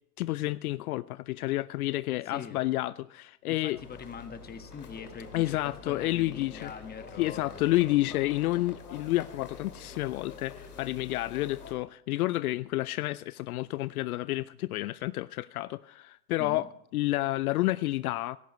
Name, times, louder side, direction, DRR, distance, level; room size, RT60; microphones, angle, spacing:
voice 1, 0.2-3.8 5.3-6.7 7.2-16.7 16.9-18.4, left 17 dB, 70° left, 0.5 m, -30 dB
voice 2, 2.3-2.6 3.5-7.7 16.4-16.7, left 6 dB, 20° left, 1.5 m, -43 dB
sound 1, 3.7-11.7, left 4 dB, 90° left, 2.5 m, -47 dB
17.0 x 15.0 x 3.1 m
hypercardioid pair, 90°, 45 cm